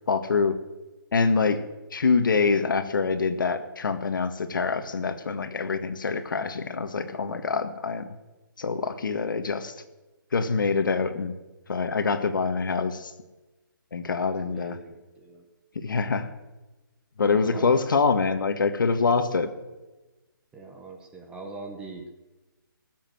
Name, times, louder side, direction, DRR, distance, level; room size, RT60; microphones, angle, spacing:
voice 1, 0.1-0.6 1.1-1.6 1.9-8.1 8.6-9.8 10.3-11.3 11.7-13.1 13.9-14.8 15.8-16.3 17.2-19.5, left 4 dB, 65° left, 9 dB, 1.7 m, -25 dB
voice 2, 14.4-15.4 17.2-17.8 19.0-19.1 20.5-22.2, right 3 dB, 5° right, 3 dB, 0.9 m, -42 dB
19.0 x 7.8 x 7.7 m, 1.1 s
hypercardioid pair, 165°, 12 cm